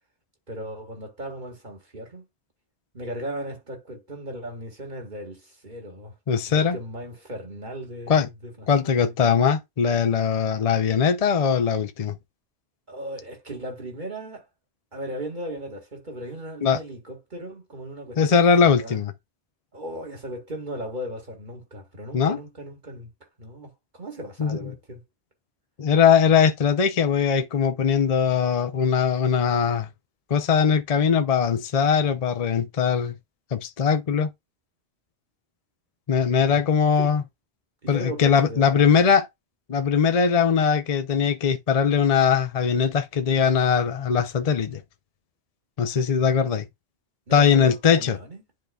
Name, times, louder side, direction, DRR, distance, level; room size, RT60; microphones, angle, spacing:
voice 1, 0.5-2.2 2.9-6.1 6.5-9.2 12.9-14.5 14.9-19.0 19.7-23.1 23.4-25.0 36.5-36.6 37.0-37.1 37.8-39.0 47.3-48.4, right 1 dB, 45° right, 2.1 m, -37 dB
voice 2, 6.3-6.8 8.1-8.3 8.7-12.2 16.6-16.8 18.2-19.1 22.1-22.4 24.4-24.6 25.8-29.9 30.3-33.1 33.5-34.3 36.1-37.2 37.9-39.3 39.7-44.8 45.8-46.7 47.3-48.2, left 6 dB, 40° left, 0.7 m, -20 dB
10.5 x 3.9 x 2.3 m
omnidirectional pair, 1.1 m